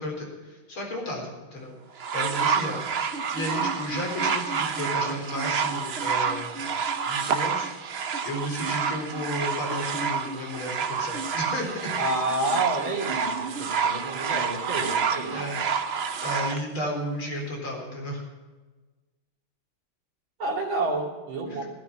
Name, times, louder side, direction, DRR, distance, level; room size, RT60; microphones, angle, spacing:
voice 1, 0.0-1.8 2.1-2.8 3.3-6.7 7.0-7.7 8.2-11.9 15.3-15.7 16.2-18.2, equal, 75° left, 0 dB, 5.0 m, -33 dB
sound 1, 2.0-16.6 17.5-17.6, right 6 dB, 90° right, 0.5 m, -28 dB
voice 2, 12.0-15.5 20.4-21.6, right 2 dB, 65° right, 0 dB, 3.4 m, -29 dB
15.5 x 13.5 x 5.7 m, 1.2 s
omnidirectional pair, 2.3 m